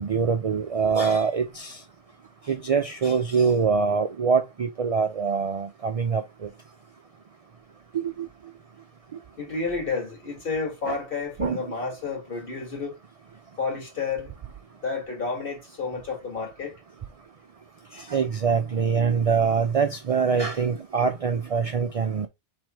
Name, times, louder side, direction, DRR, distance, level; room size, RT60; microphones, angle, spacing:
voice 1, 0.0-1.8 2.5-6.5 7.9-8.3 10.9-11.0 11.4-11.7 17.9-22.3, right 5 dB, 65° right, 0.3 m, -24 dB
voice 2, 9.4-13.0 13.6-14.3 14.8-16.8, left 4 dB, 50° left, 1.9 m, -31 dB
4.7 x 3.6 x 3.0 m
omnidirectional pair, 1.2 m